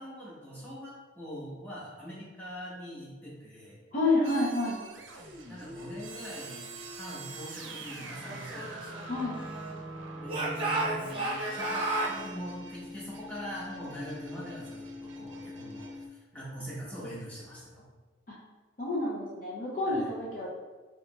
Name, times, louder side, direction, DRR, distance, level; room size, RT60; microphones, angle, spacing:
voice 1, 0.0-3.8 5.5-8.7 10.1-17.8 19.9-20.1, equal, 10° left, -8 dB, 1.1 m, -43 dB
voice 2, 3.9-4.8 9.1-9.4 18.3-18.4 18.8-20.5, left 2 dB, 45° left, -5 dB, 0.6 m, -29 dB
sound 1, 4.2-16.1, right 1 dB, 90° right, 0.5 m, -43 dB
Speech / Shout, 8.3-9.8 10.3-12.2, right 2 dB, 25° right, 0.8 m, -32 dB
4.7 x 2.9 x 2.3 m, 1.3 s
head